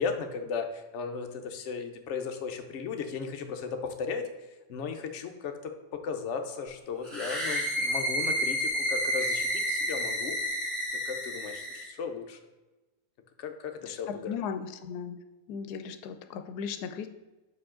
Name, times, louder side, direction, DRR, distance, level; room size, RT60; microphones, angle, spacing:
voice 1, 0.0-4.3 4.7-10.4 11.1-12.4 13.4-14.4, left 5 dB, 60° left, 6 dB, 0.8 m, -36 dB
sound 1, 7.0-11.9, equal, ahead, 1.2 m, -30 dB
voice 2, 14.2-15.2 15.5-17.1, left 7 dB, 90° left, 8 dB, 1.1 m, -36 dB
6.1 x 4.7 x 3.7 m, 1.1 s
omnidirectional pair, 1.6 m